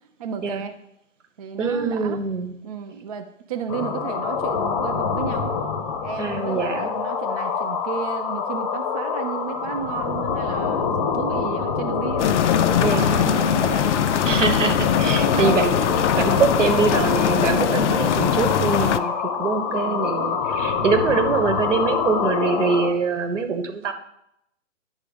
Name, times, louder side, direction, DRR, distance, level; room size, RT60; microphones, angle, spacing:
voice 1, 0.2-0.7 1.4-2.2 2.6-5.5 6.0-14.3 15.2-15.6 16.7-17.2 19.6-20.1, right 7 dB, 30° right, 5 dB, 0.4 m, -33 dB
voice 2, 1.6-2.5 6.2-6.9 12.8-13.2 14.2-15.8 16.1-19.1 19.4-23.9, right 5 dB, 70° right, 7 dB, 1.2 m, -23 dB
sound 1, 3.7-22.9, left 6 dB, 30° left, 0.7 m, -26 dB
sound 2, 12.2-19.0, left 9 dB, 65° left, 0.5 m, -22 dB
10.0 x 3.6 x 5.1 m, 0.78 s
hypercardioid pair, 135°, 38 cm